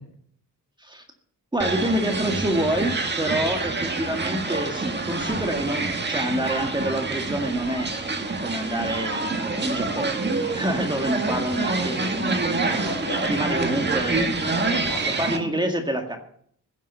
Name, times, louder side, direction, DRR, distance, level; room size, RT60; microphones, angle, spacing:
voice 1, 1.5-7.9 8.4-12.9 13.2-14.3 15.2-16.2, right 1 dB, 15° right, 4 dB, 2.0 m, -27 dB
sound 1, 1.6-15.4, right 3 dB, 30° right, 1.8 m, -27 dB
voice 2, 12.7-13.6 14.2-15.4, left 3 dB, 70° left, 2 dB, 4.5 m, -36 dB
16.0 x 7.4 x 8.1 m, 0.63 s
wide cardioid pair, 115°, 33 cm